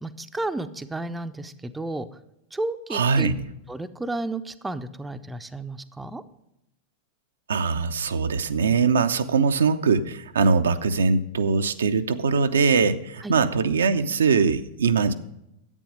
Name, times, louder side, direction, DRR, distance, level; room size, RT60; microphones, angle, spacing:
voice 1, 0.0-2.1 2.5-3.3 3.7-6.2 13.2-13.3, right 2 dB, 10° right, 10 dB, 0.5 m, -32 dB
voice 2, 2.9-3.3 7.5-15.1, right 5 dB, 70° right, 9 dB, 0.5 m, -22 dB
11.0 x 8.4 x 5.1 m, 0.83 s
figure-of-eight pair, 90°, 0 cm